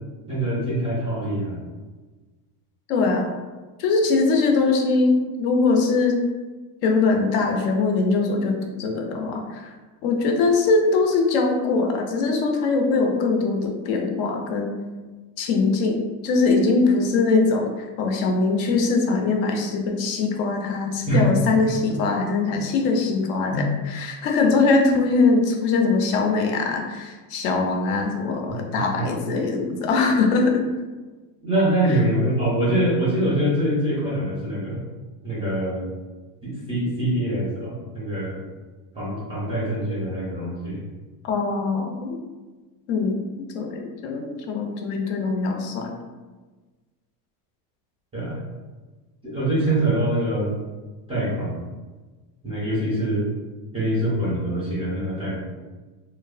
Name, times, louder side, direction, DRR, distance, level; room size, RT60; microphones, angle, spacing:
voice 1, 0.3-1.6 21.1-21.3 23.5-23.7 28.7-29.1 31.4-34.8 35.2-35.9 36.4-38.4 38.9-40.8 48.1-48.4 49.2-50.5 51.1-51.6 52.4-53.3 53.7-55.4, right 1 dB, 15° right, -8 dB, 0.4 m, -24 dB
voice 2, 2.9-3.3 3.8-6.2 6.8-9.7 10.0-14.7 15.4-30.6 31.9-32.0 41.2-42.2 42.9-45.9, left 3 dB, 65° left, 3 dB, 0.5 m, -22 dB
2.8 x 2.0 x 2.3 m, 1.3 s
cardioid pair, 160°, 47 cm